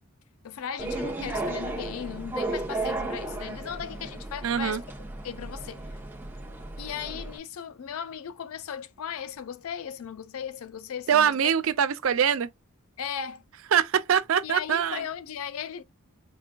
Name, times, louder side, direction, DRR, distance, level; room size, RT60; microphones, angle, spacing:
voice 1, 0.4-4.8 5.2-6.0 6.8-11.4 13.0-13.4 14.4-15.8, left 8 dB, 75° left, 0.4 m, -37 dB
sound 1, 0.8-7.4, right 2 dB, 10° right, 0.7 m, -34 dB
voice 2, 4.4-4.8 11.1-12.5 13.7-15.0, right 8 dB, 70° right, 0.4 m, -23 dB
4.7 x 2.4 x 2.2 m
head